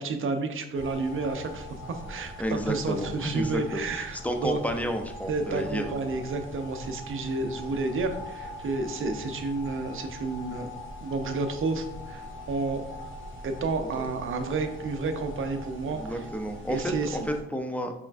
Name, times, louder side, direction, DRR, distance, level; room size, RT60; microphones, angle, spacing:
voice 1, 0.0-4.6 5.3-10.7 11.0-12.8 13.4-16.0 16.7-17.2, right 3 dB, 45° right, 7 dB, 0.6 m, -31 dB
sound 1, 0.7-17.4, left 1 dB, 40° left, 1.3 m, -42 dB
voice 2, 2.4-5.9 13.8-14.0 15.8-17.9, equal, 5° left, 5 dB, 0.4 m, -31 dB
4.8 x 3.2 x 2.5 m, 0.87 s
cardioid pair, 90°, 30 cm